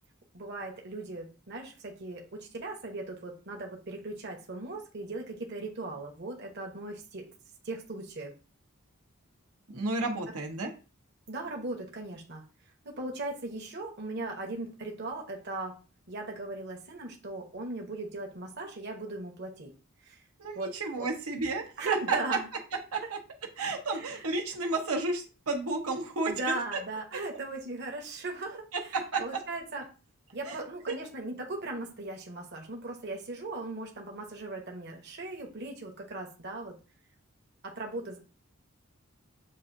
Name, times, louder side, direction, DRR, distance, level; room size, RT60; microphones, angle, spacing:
voice 1, 0.3-7.3 7.6-8.3 11.3-12.4 12.8-15.8 16.1-19.7 20.0-20.2 20.5-20.7 21.0-21.1 21.8-22.4 23.9-24.2 26.3-28.7 29.2-29.8 30.3-36.7 37.6-38.2, right 2 dB, 50° right, 1 dB, 0.9 m, -38 dB
voice 2, 9.7-10.7 20.4-22.2 22.9-23.2 23.6-26.8 28.7-29.2 30.4-30.9, right 3 dB, 90° right, 2 dB, 0.9 m, -32 dB
7.5 x 2.5 x 2.6 m, 0.34 s
head